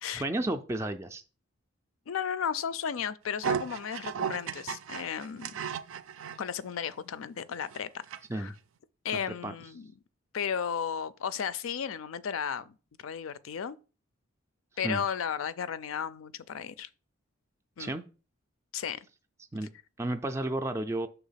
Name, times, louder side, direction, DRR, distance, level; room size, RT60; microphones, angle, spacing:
voice 1, 0.1-1.2 8.3-8.5 9.4-9.5 14.8-15.0 17.8-18.0 19.5-19.7 20.0-21.1, right 1 dB, 15° right, 0.3 m, -32 dB
voice 2, 2.1-5.6 6.4-7.9 8.3-8.5 9.0-9.9 10.3-13.8 14.8-16.9 17.8-17.9 18.7-19.1, left 7 dB, 80° left, 0.4 m, -34 dB
sound 1, 3.4-6.4 6.9-7.0 7.5-8.2 8.5-8.6, right 8 dB, 75° right, 0.5 m, -35 dB
6.0 x 3.4 x 5.6 m
head